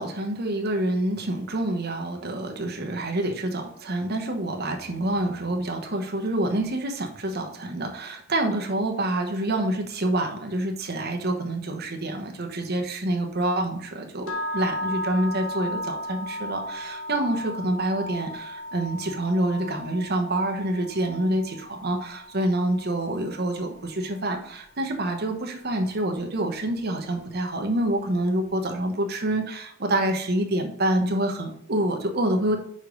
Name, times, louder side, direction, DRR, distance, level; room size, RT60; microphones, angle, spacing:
voice 1, 0.0-32.6, right 1 dB, 50° right, 3 dB, 1.1 m, -27 dB
sound 1, 14.3-24.3, equal, 80° left, 1.2 m, -35 dB
5.6 x 5.0 x 5.3 m, 0.69 s
head